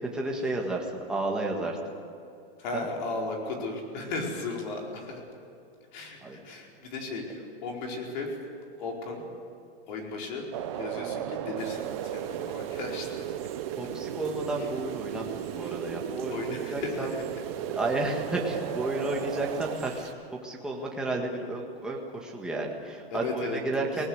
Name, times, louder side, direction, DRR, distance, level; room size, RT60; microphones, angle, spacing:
voice 1, 0.0-1.8 2.7-2.9 6.2-6.4 13.8-17.1 17.7-20.1 20.4-24.1, right 2 dB, ahead, -2 dB, 1.6 m, -32 dB
voice 2, 2.6-5.2 5.9-8.4 8.8-9.2 9.9-10.5 10.7-13.2 13.7-13.8 14.6-14.7 15.6-15.8 16.3-17.1 23.1-23.9, left 3 dB, 45° left, 0 dB, 4.7 m, -35 dB
sound 1, 10.5-19.8, right 11 dB, 30° right, 0.6 m, -35 dB
sound 2, 11.6-20.1, right 9 dB, 65° right, 2.2 m, -49 dB
23.0 x 19.5 x 8.1 m, 2.6 s
supercardioid pair, 175°, 32 cm